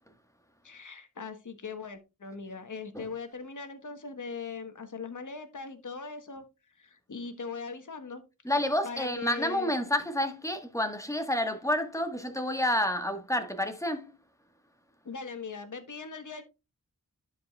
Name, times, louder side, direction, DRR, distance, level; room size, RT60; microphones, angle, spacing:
voice 1, 0.6-6.4 6.7-8.2 8.8-9.8 15.0-16.4, left 4 dB, 65° left, 1.3 m, -40 dB
voice 2, 8.4-14.1, left 1 dB, 10° left, 1.5 m, -29 dB
11.5 x 4.9 x 2.4 m
cardioid pair, 40°, 33 cm